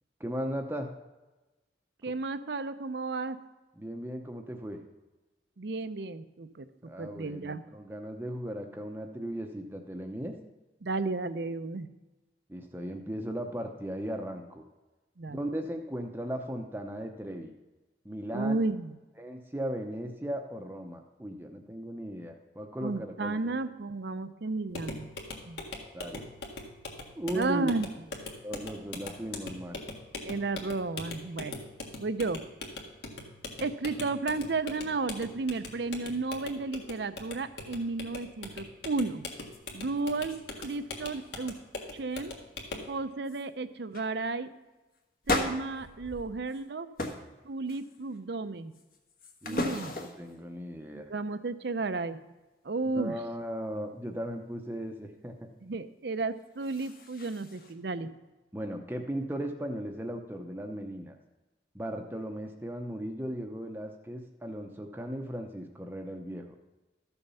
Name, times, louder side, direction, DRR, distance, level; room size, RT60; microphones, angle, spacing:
voice 1, 0.2-0.9 3.8-4.8 6.9-10.3 12.5-14.6 15.3-17.5 18.0-18.6 19.2-23.4 25.9-26.3 27.2-27.7 28.4-29.8 49.4-51.1 52.9-55.3 58.5-61.2 61.7-66.4, equal, 10° right, 3 dB, 0.7 m, -37 dB
voice 2, 2.0-3.4 5.6-6.6 7.0-7.6 10.8-11.9 15.2-15.4 18.3-19.0 22.8-25.1 25.4-25.6 27.3-28.1 30.2-31.6 32.0-32.4 33.6-39.3 39.7-41.6 41.9-42.4 42.9-44.5 45.3-46.9 47.4-48.7 49.4-49.9 50.9-52.2 52.6-53.2 55.6-58.1, right 3 dB, 70° right, 12 dB, 0.6 m, -33 dB
sound 1, 24.7-42.9, left 2 dB, 70° left, 1.8 m, -42 dB
sound 2, 39.5-39.6 40.0-40.8 41.0-41.4 41.8-42.2 42.8-42.9 43.2-43.5 43.9-44.1 45.2-46.6 47.0-47.3 47.7-48.2 48.7-50.3 56.3-57.7, left 2 dB, 50° left, 1.4 m, -36 dB
13.5 x 7.1 x 5.5 m, 1.1 s
head